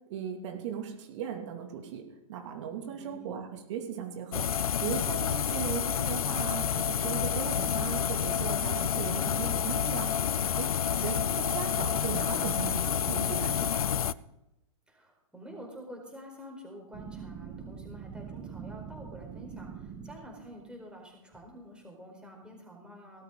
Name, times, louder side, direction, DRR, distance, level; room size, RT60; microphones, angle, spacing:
voice 1, 0.1-2.0 2.3-4.5 4.8-10.1 10.6-13.9, right 8 dB, 55° right, 2 dB, 2.7 m, -37 dB
voice 2, 3.0-3.4 14.9-23.2, equal, 5° right, 0 dB, 4.7 m, -48 dB
sound 1, 4.3-14.1, left 9 dB, 90° left, 0.5 m, -29 dB
sound 2, 16.9-20.7, right 6 dB, 30° right, 1.6 m, -44 dB
18.0 x 13.5 x 4.0 m, 0.90 s
hypercardioid pair, 130°, 18 cm